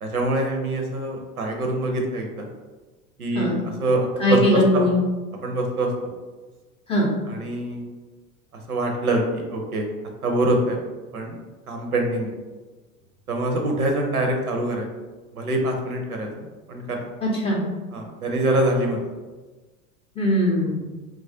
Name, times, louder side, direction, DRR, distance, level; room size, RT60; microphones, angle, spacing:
voice 1, 0.0-2.5 3.2-3.5 3.8-4.9 5.4-5.9 7.3-7.8 8.7-9.9 10.2-10.8 11.1-11.4 11.7-12.3 13.3-14.9 15.3-17.1 17.9-19.1, right 1 dB, 90° right, 2 dB, 0.6 m, -24 dB
voice 2, 4.2-5.0 6.9-7.1 17.2-17.6 20.2-20.8, left 1 dB, 15° left, -3 dB, 0.4 m, -20 dB
3.0 x 2.3 x 2.6 m, 1.3 s
figure-of-eight pair, 80°, 43 cm